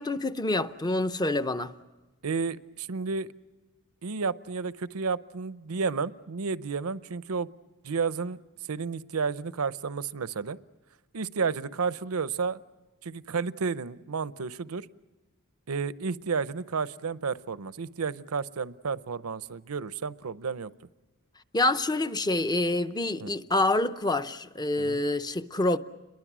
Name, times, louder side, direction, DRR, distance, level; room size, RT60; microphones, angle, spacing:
voice 1, 0.0-1.7 21.5-25.8, left 2 dB, 20° left, 0.7 m, -27 dB
voice 2, 2.2-3.3 4.0-7.5 7.8-8.4 8.7-10.6 11.1-12.6 13.0-14.9 15.7-20.7 23.2-23.3 24.8-25.0, right 5 dB, 70° right, 0.7 m, -31 dB
29.0 x 22.5 x 6.1 m
head